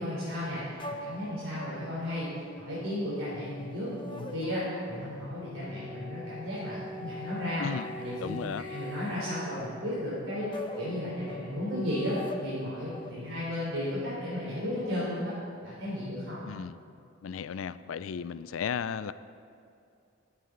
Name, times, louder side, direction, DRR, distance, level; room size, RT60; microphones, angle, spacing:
voice 1, 0.0-2.3 2.5-7.6 7.9-8.4 8.7-10.5 10.8-12.2 12.4-15.3 15.6-16.4, left 1 dB, 75° right, -9 dB, 3.5 m, -34 dB
sound 1, 0.8-13.1, left 1 dB, 25° left, 0.9 m, -42 dB
voice 2, 7.6-7.9 8.2-8.6 16.4-16.8 17.2-19.1, left 7 dB, 80° left, 14 dB, 0.4 m, -35 dB
20.0 x 8.3 x 3.9 m, 2.5 s
head